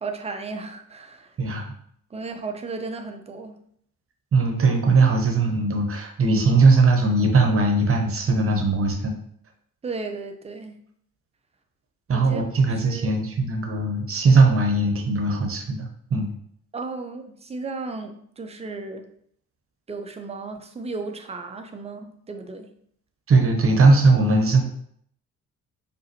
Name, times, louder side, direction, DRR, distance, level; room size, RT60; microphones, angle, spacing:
voice 1, 0.0-1.4 2.1-3.6 9.8-10.8 12.1-12.4 12.7-13.1 16.7-19.1 19.9-22.7, right 3 dB, 15° right, 6 dB, 0.5 m, -34 dB
voice 2, 4.3-9.1 12.1-16.3 23.3-24.6, right 3 dB, 30° right, 3 dB, 0.9 m, -19 dB
4.7 x 2.6 x 2.9 m, 0.65 s
figure-of-eight pair, 45°, 44 cm